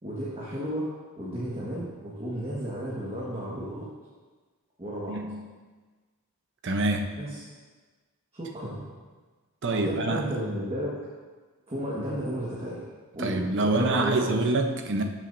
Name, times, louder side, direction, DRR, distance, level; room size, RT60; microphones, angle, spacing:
voice 1, 0.0-0.9 1.2-3.9 4.8-5.2 7.2-7.4 8.3-8.9 9.7-10.9 11.7-12.8 13.1-14.4, equal, 25° right, -7 dB, 1.5 m, -33 dB
voice 2, 5.1-5.5 6.6-7.1 9.6-10.2 13.2-15.0, right 2 dB, 55° right, 5 dB, 0.8 m, -26 dB
12.5 x 7.3 x 2.6 m, 1.4 s
head